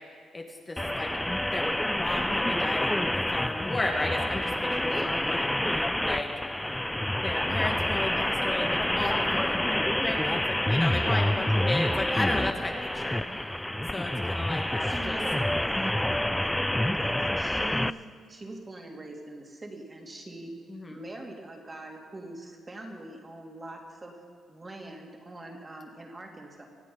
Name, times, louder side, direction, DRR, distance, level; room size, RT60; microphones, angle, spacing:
voice 1, 0.3-1.1 1.5-1.7 1.9-6.3 7.2-13.5 13.9-15.2 20.7-21.0, left 2 dB, 25° left, 2 dB, 1.6 m, -34 dB
sound 1, 0.8-17.9, left 1 dB, 5° left, 0.4 m, -28 dB
voice 2, 4.9-5.3 10.9-11.2 14.5-20.5 20.9-24.1 24.5-26.6, right 1 dB, 25° right, 1 dB, 2.7 m, -43 dB
25.0 x 8.4 x 5.5 m, 2.2 s
cardioid pair, 90°, 0 cm